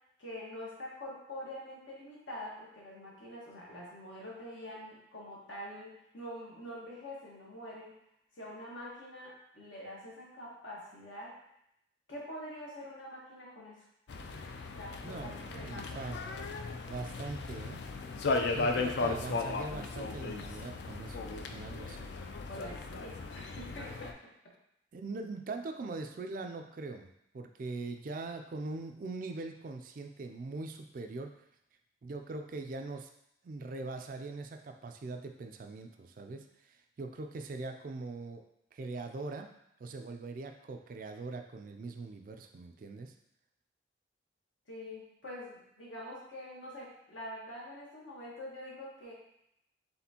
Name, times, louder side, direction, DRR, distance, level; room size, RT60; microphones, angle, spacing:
voice 1, 0.2-7.9 8.3-11.3 12.1-13.8 14.8-16.2 22.5-24.1 44.7-49.1, left 1 dB, 80° left, -5 dB, 1.4 m, -45 dB
sound 1, 14.1-24.1, left 3 dB, 60° left, 0.3 m, -36 dB
voice 2, 15.0-16.2 16.9-17.8 18.5-21.2 21.5-22.1 24.9-27.1 27.3-31.4 32.0-33.1 33.4-38.4 38.7-39.5 39.8-43.1, right 3 dB, 45° right, 5 dB, 0.3 m, -41 dB
4.2 x 3.6 x 2.8 m, 0.78 s
head